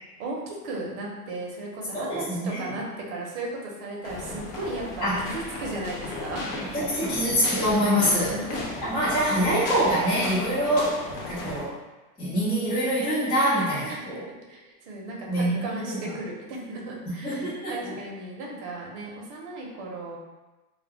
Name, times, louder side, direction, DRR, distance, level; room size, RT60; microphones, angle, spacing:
voice 1, 0.2-6.6 8.3-8.6 10.5-10.7 13.8-20.2, right 2 dB, 45° right, -2 dB, 0.8 m, -36 dB
voice 2, 1.9-2.6 5.0-5.2 6.7-8.6 8.9-10.9 11.3-11.7 12.2-14.2 15.3-16.0 17.2-17.9, equal, 10° left, -11 dB, 0.8 m, -25 dB
sound 1, 4.0-11.6, left 2 dB, 45° left, 0.6 m, -35 dB
2.3 x 2.2 x 3.4 m, 1.1 s
supercardioid pair, 135°, 47 cm